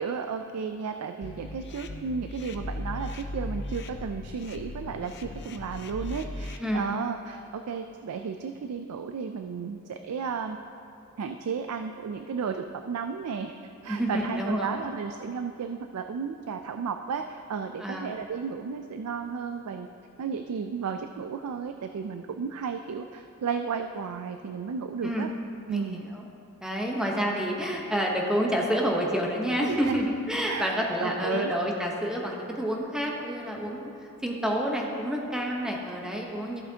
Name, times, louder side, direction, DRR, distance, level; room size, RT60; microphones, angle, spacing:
voice 1, 0.0-10.6 11.2-13.5 13.8-19.9 20.2-25.3 25.7-26.0 29.6-30.0 30.5-31.5, right 6 dB, 90° right, 7 dB, 0.4 m, -33 dB
sound 1, 1.2-6.6, left 1 dB, 50° left, 0.5 m, -37 dB
voice 2, 13.9-14.8 17.8-18.1 25.0-25.3 25.7-26.2 26.6-33.9 34.2-36.6, equal, 5° right, -1 dB, 0.9 m, -29 dB
14.5 x 7.5 x 2.8 m, 2.7 s
head